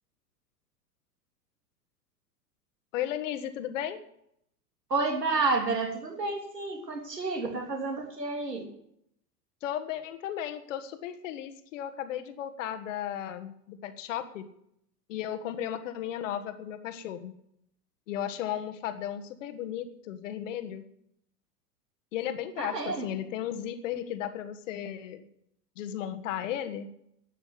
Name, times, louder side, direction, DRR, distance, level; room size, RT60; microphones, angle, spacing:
voice 1, 2.9-4.0 9.6-14.5 15.1-17.3 18.1-20.8 22.1-25.2 25.7-26.9, left 10 dB, 50° left, 9 dB, 1.6 m, -35 dB
voice 2, 4.9-8.6 22.6-23.1, right 3 dB, 75° right, 2 dB, 3.3 m, -30 dB
12.0 x 8.9 x 8.2 m, 0.74 s
figure-of-eight pair, 95°, 48 cm